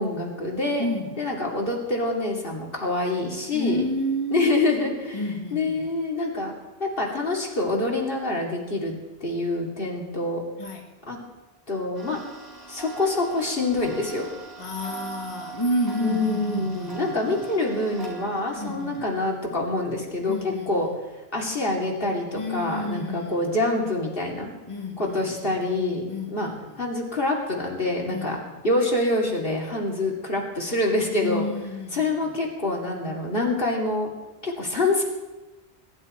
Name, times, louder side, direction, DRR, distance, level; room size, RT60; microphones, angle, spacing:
voice 1, 0.0-0.8 1.2-3.8 4.3-5.2 5.5-6.5 6.8-8.9 9.2-10.4 11.1-11.2 11.7-12.2 12.7-14.3 16.0-20.9 21.3-24.5 25.0-26.5 26.8-28.4 28.6-31.5 31.9-34.1 34.4-35.0, left 2 dB, 60° left, -1 dB, 3.0 m, -26 dB
voice 2, 0.8-1.2 3.5-4.5 5.1-5.9 10.6-10.9 14.6-17.5 18.6-19.0 20.3-21.0 22.3-23.5 24.7-25.6 26.1-26.8 28.1-28.6 31.1-32.4, left 1 dB, 30° left, -2 dB, 2.1 m, -31 dB
Tick-tock, 11.9-19.2, right 4 dB, 75° right, 4.2 m, -41 dB
21.0 x 11.5 x 4.5 m, 1.1 s
omnidirectional pair, 1.0 m